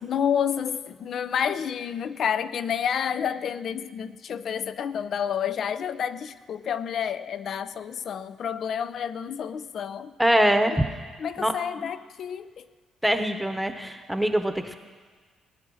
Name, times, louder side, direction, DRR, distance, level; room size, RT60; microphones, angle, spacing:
voice 1, 0.0-10.1 10.7-10.8 11.2-12.6, left 8 dB, 60° left, 14 dB, 0.6 m, -29 dB
voice 2, 10.2-10.7 11.4-11.5 13.0-14.8, equal, 5° right, 7 dB, 1.0 m, -23 dB
19.0 x 9.7 x 6.3 m, 1.5 s
cardioid pair, 90°, 0 cm